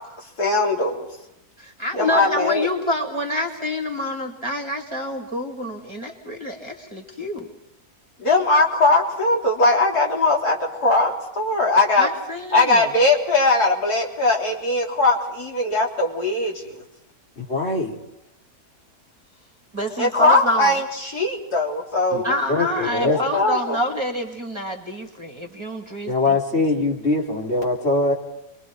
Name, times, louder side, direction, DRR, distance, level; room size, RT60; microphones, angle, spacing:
voice 1, 0.4-1.1 1.9-2.7 8.2-12.1 12.5-16.8 20.0-22.4 23.0-23.8, left 2 dB, 75° left, -1 dB, 4.1 m, -20 dB
voice 2, 1.6-7.5 11.9-12.9 19.7-20.8 22.2-26.4, left 1 dB, 15° right, 1 dB, 2.3 m, -27 dB
voice 3, 17.4-18.0 22.1-22.2 22.5-23.2 26.1-28.1, left 2 dB, 40° left, -2 dB, 3.9 m, -22 dB
30.0 x 23.5 x 4.7 m, 0.88 s
omnidirectional pair, 1.7 m